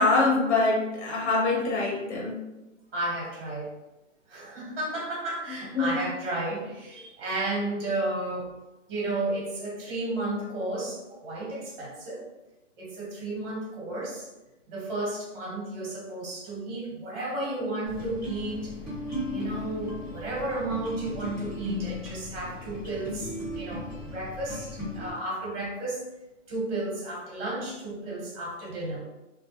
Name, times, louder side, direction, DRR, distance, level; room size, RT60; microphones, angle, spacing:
voice 1, 0.0-2.4 5.7-5.9, left 3 dB, 60° left, -1 dB, 0.9 m, -24 dB
voice 2, 2.9-3.8 4.3-8.5 8.9-12.2 12.8-14.3 14.7-18.7 19.3-26.0 26.5-29.0, right 2 dB, 45° right, -2 dB, 1.0 m, -33 dB
sound 1, 17.9-25.1, left 2 dB, 5° left, 0.4 m, -37 dB
2.2 x 2.1 x 2.8 m, 1.0 s
hypercardioid pair, 150°, 39 cm